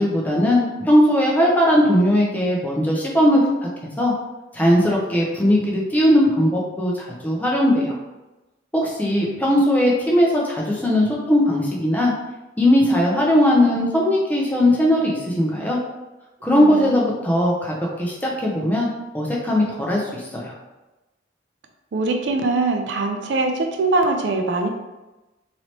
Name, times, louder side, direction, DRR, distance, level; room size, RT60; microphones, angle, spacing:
voice 1, 0.0-3.7 4.0-4.1 4.5-8.0 8.7-12.1 12.6-15.8 16.4-18.9 19.1-20.5, left 1 dB, 10° left, -4 dB, 0.5 m, -19 dB
voice 2, 9.0-9.4 16.5-17.1 21.9-24.7, right 3 dB, 65° right, 4 dB, 0.4 m, -23 dB
3.1 x 2.9 x 2.8 m, 1.1 s
head